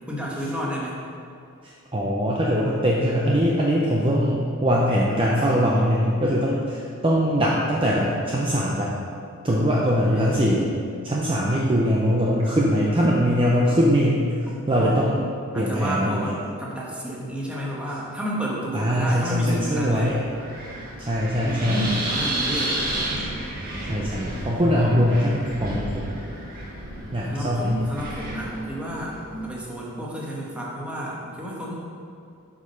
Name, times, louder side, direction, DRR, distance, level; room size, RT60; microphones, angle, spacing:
voice 1, 0.1-1.0 14.5-14.9 15.5-20.1 21.4-22.8 27.3-31.8, equal, 5° right, -5 dB, 1.4 m, -31 dB
voice 2, 1.6-8.9 9.4-10.7 11.0-15.2 15.6-16.3 18.7-20.2 21.0-21.8 23.9-26.1 27.1-27.8, equal, 25° right, -4 dB, 0.7 m, -22 dB
Wind, 19.4-29.5, right 1 dB, 45° right, 1.5 m, -32 dB
8.2 x 5.2 x 5.6 m, 2.4 s
head